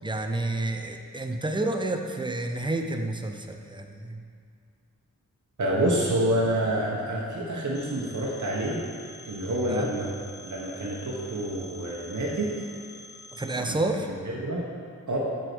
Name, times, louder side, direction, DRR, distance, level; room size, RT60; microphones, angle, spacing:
voice 1, 0.0-4.2 9.7-9.9 13.3-14.1, right 2 dB, 15° right, 4 dB, 0.5 m, -29 dB
voice 2, 5.6-8.8 9.3-10.1 10.4-12.5 13.6-13.7 14.3-14.7 15.1-15.2, right 1 dB, 65° right, -4 dB, 1.0 m, -27 dB
Telephone, 7.7-13.6, left 1 dB, 35° left, 0.6 m, -46 dB
7.9 x 3.8 x 6.0 m, 2.2 s
wide cardioid pair, 75°, 32 cm